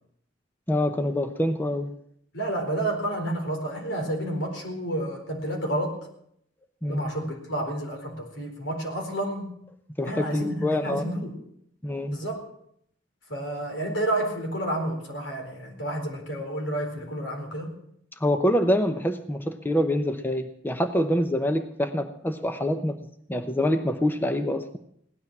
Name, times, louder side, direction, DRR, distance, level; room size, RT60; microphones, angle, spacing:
voice 1, 0.7-1.9 6.8-7.0 10.0-11.0 11.8-12.2 18.2-23.0 23.3-24.8, left 1 dB, 10° left, 7 dB, 0.7 m, -25 dB
voice 2, 2.3-6.1 6.8-9.5 10.0-11.4 12.1-12.4 13.3-17.7, right 1 dB, 80° left, 2 dB, 4.3 m, -30 dB
17.0 x 12.0 x 6.0 m, 0.70 s
head